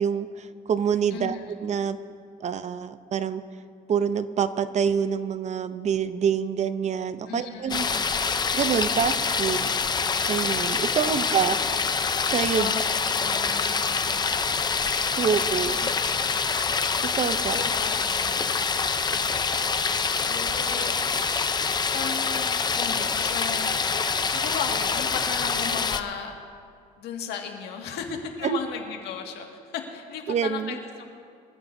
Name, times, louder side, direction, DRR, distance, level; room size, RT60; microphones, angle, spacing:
voice 1, 0.0-2.0 2.4-3.4 3.9-7.9 8.5-9.7 10.3-11.6 12.2-12.7 15.2-15.9 17.1-17.6 28.4-28.6 30.3-30.8, right 7 dB, 45° right, 12 dB, 0.7 m, -26 dB
voice 2, 1.1-1.4 7.3-8.0 11.0-11.4 11.7-11.8 12.6-12.8 13.1-14.3 17.3-18.7 19.6-21.3 21.9-23.7 24.3-26.3 27.0-31.0, left 7 dB, 80° left, 2 dB, 2.0 m, -36 dB
sound 1, 7.7-26.0, left 5 dB, 25° left, 0.6 m, -26 dB
24.5 x 14.5 x 2.7 m, 2.2 s
cardioid pair, 110°, 17 cm